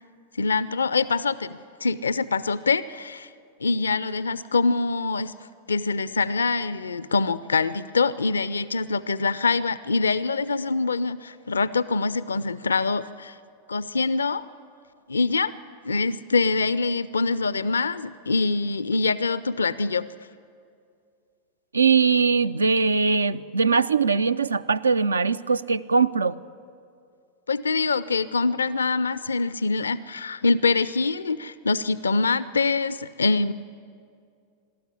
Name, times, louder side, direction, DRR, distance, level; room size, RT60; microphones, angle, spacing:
voice 1, 0.4-3.3 3.6-5.3 5.7-13.3 13.7-14.5 15.1-15.5 15.8-20.0 27.5-33.5, left 4 dB, 75° left, 17 dB, 0.4 m, -24 dB
voice 2, 21.7-26.4, right 5 dB, 75° right, 17 dB, 0.4 m, -21 dB
23.0 x 13.0 x 10.0 m, 2.4 s
figure-of-eight pair, 90°, 0 cm